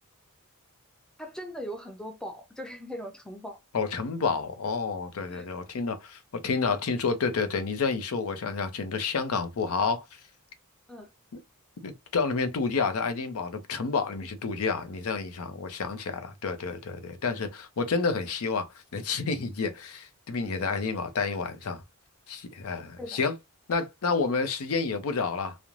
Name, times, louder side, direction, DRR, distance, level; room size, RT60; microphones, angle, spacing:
voice 1, 1.2-3.6 5.3-5.5 10.9-11.1 23.0-23.2, equal, 5° left, 0.3 m, -39 dB
voice 2, 3.7-10.0 11.3-11.4 11.8-21.8 22.3-23.3 23.7-25.6, left 4 dB, 70° left, 0.5 m, -29 dB
3.0 x 2.0 x 2.4 m
head